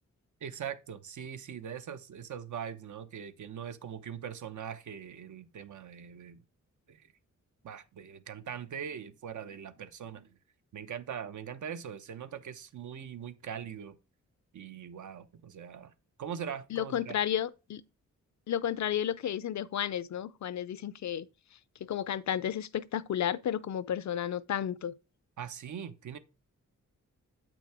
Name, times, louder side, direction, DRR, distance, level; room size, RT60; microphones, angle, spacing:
voice 1, 0.4-6.4 6.9-7.0 7.6-10.4 10.7-14.0 14.5-15.9 16.2-17.2 25.4-26.2, right 8 dB, 70° right, 0.9 m, -41 dB
voice 2, 16.7-17.8 18.5-21.3 21.8-24.9, left 10 dB, 65° left, 0.5 m, -32 dB
8.1 x 6.0 x 3.4 m
wide cardioid pair, 115°, 31 cm